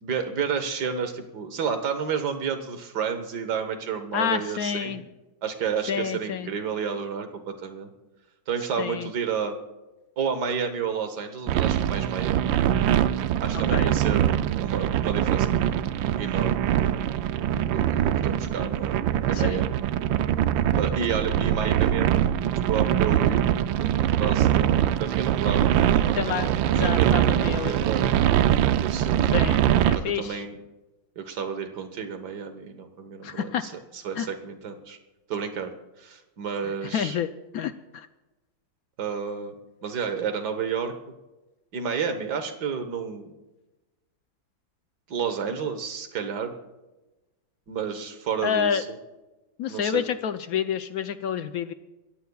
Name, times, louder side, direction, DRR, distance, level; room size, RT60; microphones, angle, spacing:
voice 1, 0.0-5.0 5.4-7.9 8.5-9.6 10.2-12.6 13.4-15.6 16.2-16.7 17.7-19.0 19.3-19.8 20.8-22.3 22.7-23.5 23.8-23.9 24.2-28.1 28.8-29.2 29.9-30.5 31.2-35.0 35.3-35.7 36.0-37.2 39.0-39.5 39.8-40.9 41.7-43.3 45.1-46.5 47.7-48.9 49.7-50.0, right 6 dB, 60° right, 7 dB, 1.8 m, -31 dB
voice 2, 4.1-5.0 5.9-6.5 8.8-9.1 13.5-13.9 19.3-19.6 26.1-27.8 29.3-30.4 33.2-33.7 34.2-34.3 36.9-37.3 37.5-38.1 48.4-48.8 49.6-51.7, left 8 dB, 70° left, 10 dB, 0.9 m, -28 dB
sound 1, 11.5-30.0, right 11 dB, 90° right, 1.4 m, -23 dB
27.5 x 15.0 x 2.3 m, 1.1 s
omnidirectional pair, 2.0 m